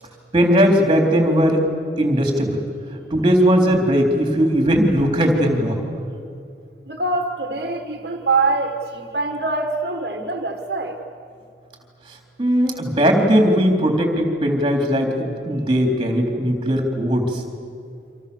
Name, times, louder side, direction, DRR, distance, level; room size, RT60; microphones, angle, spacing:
voice 1, 0.3-1.6 2.0-2.6 3.1-5.9 12.4-17.4, equal, 25° right, 2 dB, 3.7 m, -18 dB
voice 2, 6.9-10.9, right 3 dB, 65° right, 4 dB, 1.6 m, -24 dB
28.0 x 26.0 x 7.2 m, 2.4 s
head